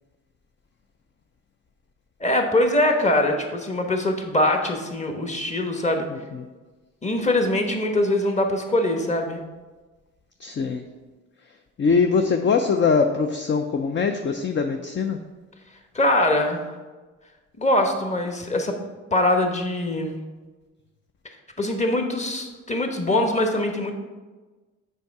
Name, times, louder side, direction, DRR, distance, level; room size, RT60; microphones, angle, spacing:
voice 1, 2.2-6.1 7.0-9.4 15.9-16.7 17.6-18.7 19.1-20.2 21.6-23.9, left 1 dB, 25° left, 4 dB, 1.2 m, -22 dB
voice 2, 10.4-10.8 11.8-15.2, left 5 dB, 40° left, 5 dB, 0.6 m, -22 dB
6.7 x 4.8 x 4.7 m, 1.3 s
cardioid pair, 90°, 30 cm